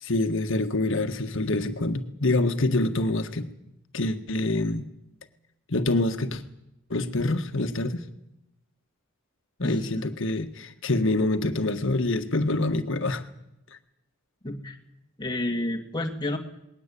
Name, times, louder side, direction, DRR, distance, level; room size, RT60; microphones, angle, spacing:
voice 1, 0.0-3.5 3.9-4.9 5.7-6.4 6.9-8.0 9.6-13.2, left 2 dB, 65° left, 8 dB, 1.7 m, -26 dB
voice 2, 9.6-10.1 14.4-14.8 15.2-16.4, left 1 dB, 20° left, 3 dB, 2.3 m, -30 dB
20.5 x 17.0 x 10.0 m, 0.85 s
head